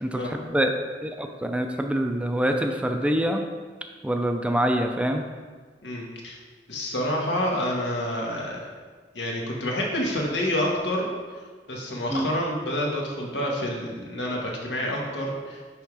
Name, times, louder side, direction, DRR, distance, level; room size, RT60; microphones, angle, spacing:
voice 1, 0.0-0.7 1.0-3.4 4.0-5.2 12.1-12.3, right 1 dB, 5° right, 4 dB, 0.4 m, -25 dB
voice 2, 5.8-6.4 6.7-8.6 9.1-11.1 11.7-15.6, left 1 dB, 90° left, -2 dB, 1.5 m, -28 dB
10.0 x 3.6 x 4.8 m, 1.5 s
head